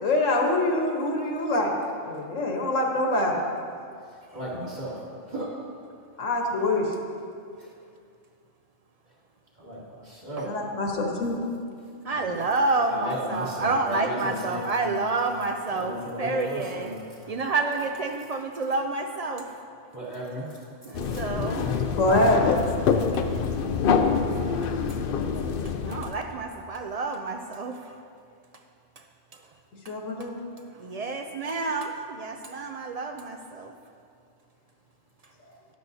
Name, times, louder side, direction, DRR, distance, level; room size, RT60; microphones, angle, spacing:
voice 1, 0.0-1.7 2.1-3.4 6.2-6.9 10.4-11.4 22.0-22.5 29.9-30.4, left 2 dB, 80° left, 0 dB, 1.5 m, -24 dB
voice 2, 4.3-5.0 5.3-5.5 9.6-10.5 12.1-12.3 12.9-14.9 15.7-17.0 19.9-20.5 21.1-21.2, equal, 35° right, -8 dB, 2.9 m, -35 dB
voice 3, 12.0-16.9 17.3-19.6 20.9-21.8 24.6-24.7 25.8-28.0 29.3-29.4 29.8-29.9 30.7-33.7, right 3 dB, 70° right, 5 dB, 0.3 m, -29 dB
sound 1, 20.9-26.1, left 6 dB, 60° left, 0.6 m, -26 dB
12.5 x 11.0 x 2.7 m, 2.3 s
omnidirectional pair, 1.3 m